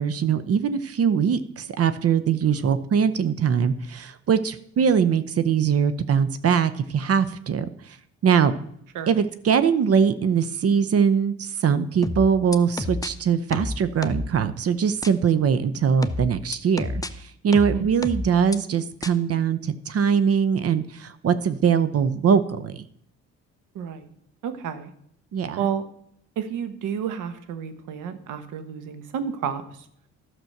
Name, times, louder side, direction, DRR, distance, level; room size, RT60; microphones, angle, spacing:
voice 1, 0.0-7.7 8.2-8.5 9.1-22.8 25.3-25.6, right 7 dB, 50° right, 13 dB, 0.8 m, -22 dB
sound 1, 12.0-13.1 13.5-14.3 15.0-15.1 16.0-17.1 17.5-18.6 19.0-19.1, left 2 dB, 10° left, 0.6 m, -29 dB
voice 2, 23.7-24.1 24.4-24.9 25.6-25.8 26.4-29.6, right 8 dB, 85° right, 11 dB, 1.2 m, -30 dB
12.0 x 6.1 x 6.5 m, 0.69 s
cardioid pair, 90°, 30 cm